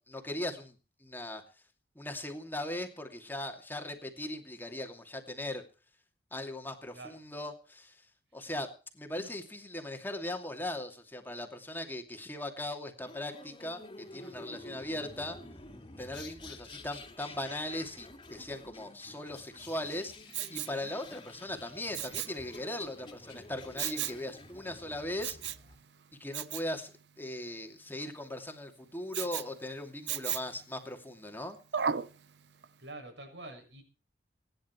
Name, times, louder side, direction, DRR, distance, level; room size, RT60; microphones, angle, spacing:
voice 1, 0.0-1.4 1.9-5.6 6.3-8.0 8.3-15.4 16.0-25.4 26.2-31.6, left 1 dB, 10° left, 4 dB, 2.7 m, -39 dB
sound 1, 13.0-25.8, left 2 dB, 30° left, 2.9 m, -50 dB
Respiratory sounds, 20.3-20.8 21.9-22.4 23.8-24.2 25.2-25.7 26.3-26.7 29.1-29.5 30.1-30.6 31.7-32.1 32.6-32.7, right 8 dB, 70° right, 0.8 m, -34 dB
voice 2, 32.8-33.8, right 2 dB, 90° right, 5 dB, 7.2 m, -46 dB
25.5 x 10.5 x 4.6 m, 0.35 s
head